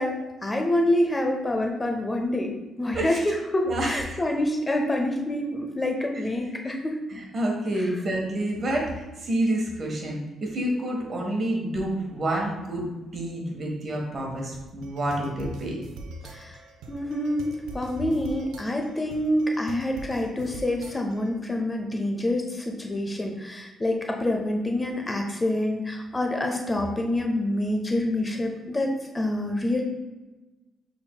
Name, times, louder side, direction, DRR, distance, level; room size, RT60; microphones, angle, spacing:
voice 1, 0.0-6.9 7.8-7.9 16.2-16.6 16.9-29.8, left 1 dB, 20° left, 2 dB, 0.6 m, -27 dB
voice 2, 3.6-4.2 7.1-12.9 13.1-15.8, right 1 dB, 45° right, 0 dB, 1.3 m, -28 dB
sound 1, 14.5-21.4, right 3 dB, 90° right, 0.5 m, -44 dB
6.6 x 3.6 x 2.2 m, 1.1 s
cardioid pair, 90°, 0 cm